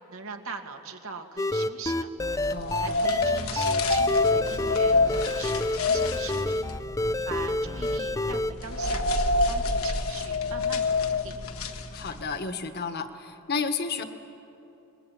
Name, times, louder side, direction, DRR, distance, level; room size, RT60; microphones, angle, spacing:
voice 1, 0.1-2.1 2.8-6.7 7.2-9.0 9.5-11.4, right 5 dB, 80° right, 4 dB, 2.0 m, -41 dB
sound 1, 1.4-8.5, left 2 dB, 15° left, 0.5 m, -28 dB
sound 2, 2.4-12.4, left 3 dB, 85° left, 1.5 m, -27 dB
voice 2, 2.5-3.1 11.9-14.1, left 5 dB, 50° left, 8 dB, 1.5 m, -32 dB
26.0 x 21.5 x 8.8 m, 3.0 s
head